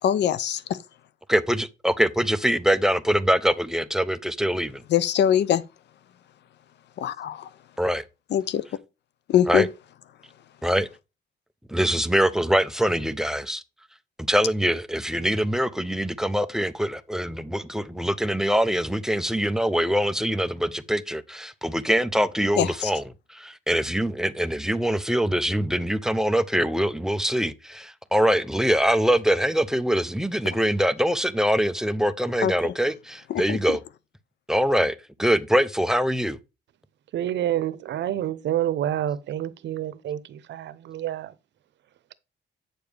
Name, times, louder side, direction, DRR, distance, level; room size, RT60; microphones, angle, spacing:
voice 1, 0.0-0.8 4.9-5.6 7.0-7.5 8.3-8.7 9.3-9.7 22.6-22.9 32.4-32.5 33.3-33.8, left 10 dB, 75° left, 0.6 m, -23 dB
voice 2, 1.3-4.8 7.8-8.0 9.5-9.7 10.6-10.9 11.7-13.6 14.3-23.0 23.3-33.8 34.5-36.4, equal, 5° right, 0.6 m, -23 dB
voice 3, 37.1-41.3, right 11 dB, 80° right, 0.8 m, -28 dB
9.1 x 6.9 x 3.4 m
cardioid pair, 125°, 18 cm